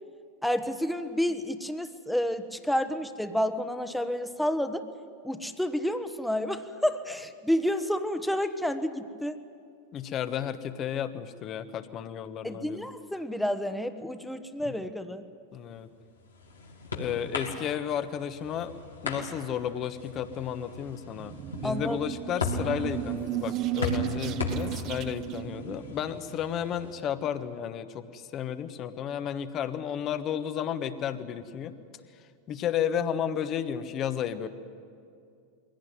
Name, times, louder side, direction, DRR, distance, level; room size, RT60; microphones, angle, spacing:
voice 1, 0.4-4.8 5.2-9.4 12.4-15.2 21.6-22.0, equal, 5° left, 9 dB, 1.2 m, -30 dB
voice 2, 9.9-12.9 14.6-14.7 15.5-15.9 16.9-18.7 19.0-31.7 32.5-34.5, left 9 dB, 40° left, 11 dB, 1.3 m, -32 dB
sound 1, 15.8-26.9, left 3 dB, 90° left, 2.9 m, -37 dB
sound 2, 21.0-26.4, right 15 dB, 40° right, 0.5 m, -35 dB
22.0 x 17.0 x 9.5 m, 2.4 s
hypercardioid pair, 95°, 0 cm